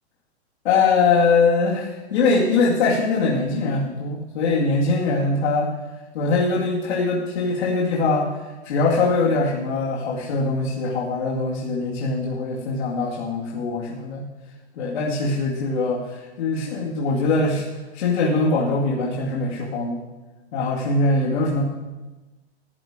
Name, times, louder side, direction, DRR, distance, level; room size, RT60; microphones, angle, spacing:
voice 1, 0.6-5.7 6.1-8.4 8.6-14.2 14.8-17.6 17.9-20.1 20.5-21.6, left 3 dB, 70° left, -4 dB, 2.3 m, -22 dB
13.5 x 8.0 x 5.1 m, 1.2 s
hypercardioid pair, 155°, 33 cm